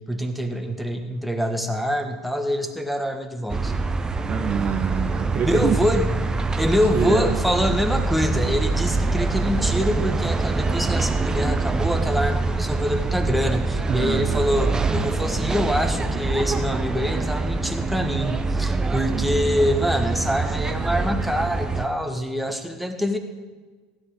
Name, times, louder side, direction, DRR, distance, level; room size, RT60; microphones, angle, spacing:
voice 1, 0.1-3.7 5.4-6.1 6.6-23.2, equal, ahead, 4 dB, 1.6 m, -25 dB
sound 1, 3.5-21.9, right 3 dB, 20° right, 0.9 m, -24 dB
voice 2, 4.3-5.8 6.9-7.4 13.9-14.5 18.9-19.2, right 7 dB, 40° right, 6 dB, 1.0 m, -26 dB
16.0 x 9.8 x 5.1 m, 1.4 s
hypercardioid pair, 85°, 4 cm